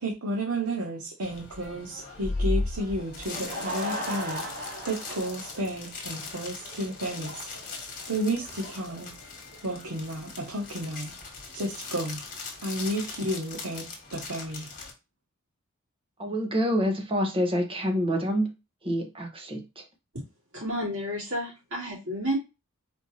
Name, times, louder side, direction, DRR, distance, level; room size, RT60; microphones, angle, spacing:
voice 1, 0.0-7.4 8.1-9.1 9.6-11.1 11.5-12.2 12.6-13.8 14.1-14.7, right 1 dB, 85° right, -1 dB, 1.1 m, -32 dB
sound 1, 1.2-14.9, left 2 dB, 40° left, 1.6 m, -37 dB
Laughter / Crowd, 3.0-9.9, equal, 40° right, 2.3 m, -39 dB
voice 2, 16.2-18.5 18.8-19.8, equal, 25° right, 4 dB, 0.9 m, -27 dB
voice 3, 20.5-22.4, equal, 65° right, -5 dB, 2.9 m, -31 dB
4.4 x 2.8 x 4.1 m, 0.26 s
head